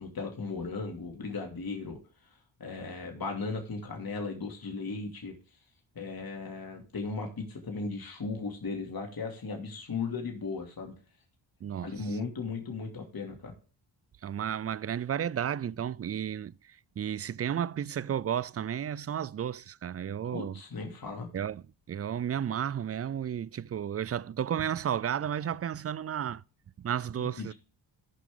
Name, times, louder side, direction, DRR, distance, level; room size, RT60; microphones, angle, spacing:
voice 1, 0.0-2.0 2.6-5.3 5.9-10.9 11.8-13.5 20.3-21.3 27.2-27.5, left 4 dB, 45° left, 2.6 m, -36 dB
voice 2, 11.6-12.2 14.2-20.6 21.3-26.4 26.8-27.5, right 9 dB, 30° right, 0.4 m, -33 dB
13.5 x 5.7 x 3.7 m
supercardioid pair, 50°, 48 cm